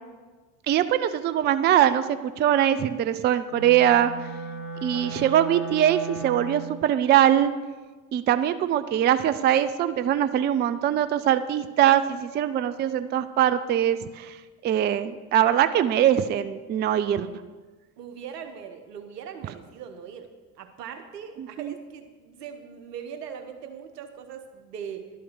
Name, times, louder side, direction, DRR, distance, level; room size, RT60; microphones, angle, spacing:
voice 1, 0.7-2.0 2.4-4.1 4.8-7.5 8.1-14.3 14.6-17.3 21.4-21.7, right 10 dB, 25° right, 12 dB, 0.4 m, -22 dB
Wind instrument woodwind instrument, 3.5-6.9, right 3 dB, 65° left, 2.0 m, -36 dB
voice 2, 4.7-5.2 18.0-20.3 20.6-25.1, right 7 dB, 80° right, 6 dB, 1.1 m, -40 dB
11.5 x 5.8 x 6.4 m, 1.3 s
figure-of-eight pair, 60°, 48 cm